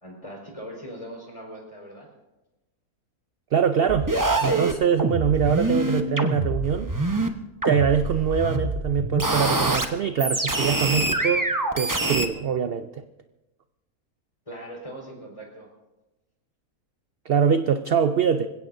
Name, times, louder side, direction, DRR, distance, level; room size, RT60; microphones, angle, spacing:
voice 1, 0.0-2.1 14.5-15.7, equal, 20° left, -1 dB, 4.6 m, -40 dB
voice 2, 3.5-4.1 4.4-6.9 7.6-13.0 17.3-18.5, right 7 dB, 65° right, 9 dB, 0.6 m, -23 dB
sound 1, 3.9-7.3 7.6-9.9 10.2-12.3, right 2 dB, 15° right, 0.7 m, -25 dB
26.5 x 16.5 x 2.7 m, 1.0 s
omnidirectional pair, 1.6 m